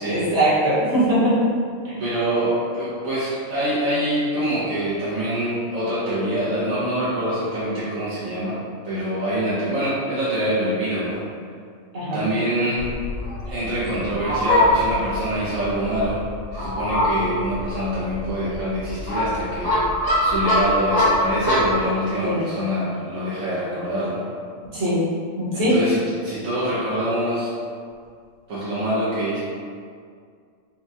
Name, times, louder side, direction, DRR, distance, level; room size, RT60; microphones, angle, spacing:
voice 1, 0.1-1.3 1.8-2.0 11.9-12.3 13.8-13.9 22.2-22.4 24.7-25.0 25.4-25.8, right 1 dB, 55° right, -10 dB, 1.5 m, -21 dB
voice 2, 2.0-8.6 8.8-11.2 12.1-12.9 13.4-16.2 16.5-19.8 20.2-24.2 25.5-27.5 28.5-29.4, equal, 75° right, -9 dB, 1.2 m, -25 dB
Fowl, 12.8-21.8, left 1 dB, 85° left, 2.1 m, -23 dB
5.6 x 2.3 x 2.7 m, 2.2 s
omnidirectional pair, 1.5 m